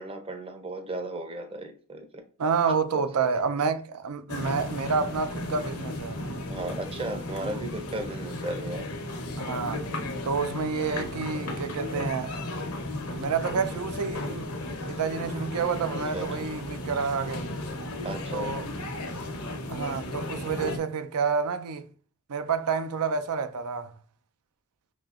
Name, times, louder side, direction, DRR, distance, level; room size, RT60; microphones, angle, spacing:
voice 1, 0.0-2.2 2.6-3.4 6.5-8.9 16.1-16.3 18.0-18.5 19.4-19.5, right 1 dB, 25° right, 0.6 m, -35 dB
voice 2, 2.4-6.2 7.4-7.6 9.4-9.9 10.2-12.4 13.2-14.6 14.9-17.5 18.3-18.7 19.7-21.9 22.3-24.0, right 5 dB, 80° right, 0.5 m, -29 dB
sound 1, 4.3-20.8, left 1 dB, 75° left, 0.9 m, -34 dB
4.9 x 2.8 x 2.4 m
head